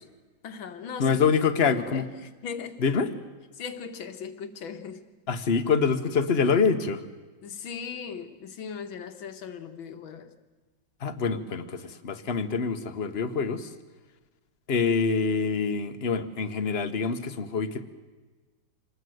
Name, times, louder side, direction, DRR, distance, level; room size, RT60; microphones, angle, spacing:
voice 1, 0.4-1.2 1.6-2.8 3.5-5.0 7.4-10.3, left 6 dB, 70° left, 9 dB, 2.2 m, -38 dB
voice 2, 1.0-2.0 2.8-3.1 5.3-7.0 11.0-13.7 14.7-17.8, left 5 dB, 35° left, 10 dB, 1.2 m, -25 dB
26.5 x 19.5 x 7.9 m, 1.3 s
omnidirectional pair, 2.3 m